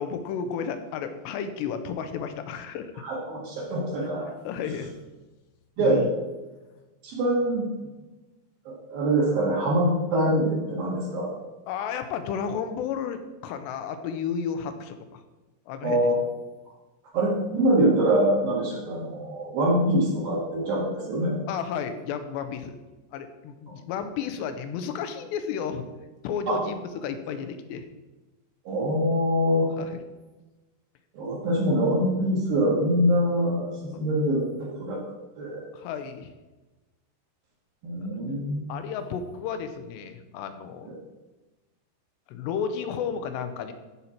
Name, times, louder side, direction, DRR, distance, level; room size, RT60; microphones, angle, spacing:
voice 1, 0.0-2.9 4.4-4.9 5.8-6.1 11.7-15.2 15.7-16.1 21.5-22.8 23.1-25.9 26.2-27.9 29.8-30.0 33.9-34.0 35.7-36.3 38.0-38.1 38.7-41.0 42.3-43.7, left 7 dB, 80° left, 9 dB, 2.8 m, -32 dB
voice 2, 3.0-4.3 5.8-6.0 7.0-7.7 8.7-11.3 15.8-16.1 17.1-21.4 26.5-26.6 28.6-29.7 31.1-35.0 35.4-35.6 37.8-38.6 40.9-41.0, right 1 dB, 60° right, -5 dB, 3.3 m, -24 dB
14.5 x 5.5 x 4.4 m, 1.2 s
omnidirectional pair, 5.0 m